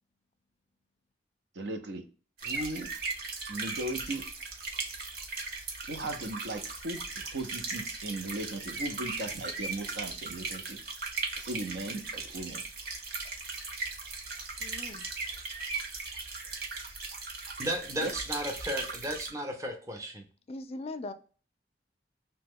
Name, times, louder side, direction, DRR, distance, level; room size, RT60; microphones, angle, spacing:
voice 1, 1.6-2.0 2.4-2.9 3.5-4.3 5.9-10.8 11.4-12.6 18.0-18.1, right 2 dB, 90° right, 0.6 m, -37 dB
sound 1, 2.4-19.3, right 3 dB, 60° right, 0.7 m, -38 dB
voice 2, 14.6-15.1 20.5-21.1, left 2 dB, 35° left, 0.3 m, -39 dB
voice 3, 17.6-20.2, equal, 20° right, 0.5 m, -34 dB
3.0 x 2.2 x 3.5 m
head